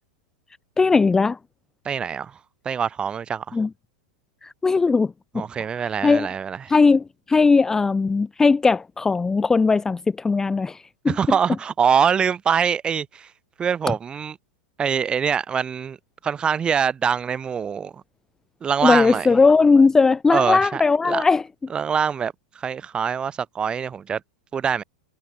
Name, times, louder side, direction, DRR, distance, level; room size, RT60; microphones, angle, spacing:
voice 1, 0.8-1.4 3.5-3.7 4.4-5.4 5.8-6.3 6.7-10.8 11.0-11.4 18.8-21.4, left 4 dB, 10° left, 0.4 m, -18 dB
voice 2, 1.8-2.3 2.6-3.6 5.3-6.6 11.1-13.3 13.6-14.3 14.8-16.0 16.2-17.9 18.6-19.3 20.3-20.8 21.1-21.2 21.7-24.2 24.5-24.8, right 7 dB, 20° right, 1.0 m, -24 dB
hypercardioid pair, 110°, 4 cm